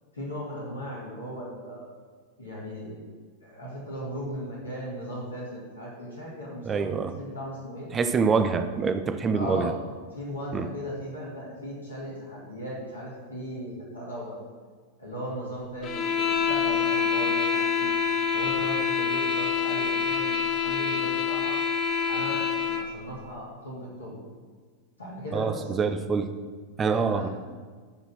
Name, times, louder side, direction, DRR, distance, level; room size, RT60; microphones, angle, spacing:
voice 1, 0.1-1.9 2.4-3.0 3.4-6.9 7.2-7.9 9.3-9.7 10.1-14.3 15.0-17.9 18.3-21.6 22.1-24.1 25.0-25.7 26.9-27.3, equal, 80° left, -6 dB, 2.6 m, -37 dB
voice 2, 6.6-7.1 7.9-9.7 10.5-10.7 25.3-26.3 26.8-27.3, right 5 dB, 20° right, 9 dB, 0.6 m, -25 dB
sound 1, 15.8-22.9, left 6 dB, 35° left, 1.1 m, -26 dB
11.5 x 4.0 x 6.0 m, 1.5 s
figure-of-eight pair, 90°, 0 cm